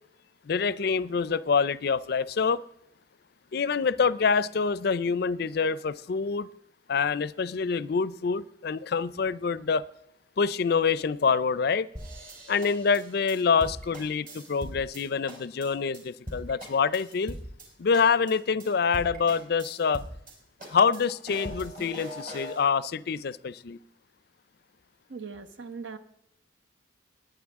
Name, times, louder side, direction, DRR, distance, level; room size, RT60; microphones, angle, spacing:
voice 1, 0.5-2.6 3.5-6.5 6.9-9.9 10.4-11.9 12.5-17.3 17.8-20.0 20.7-23.8, left 5 dB, 55° left, 0.4 m, -26 dB
sound 1, 11.9-15.0 15.3-15.7 15.9-16.0 16.3-17.7 17.9-18.3 18.6-18.7 18.9-20.3 20.6-22.6, equal, 45° right, 4.2 m, -41 dB
voice 2, 25.1-26.0, right 5 dB, 70° right, 1.1 m, -39 dB
20.5 x 9.1 x 3.6 m
head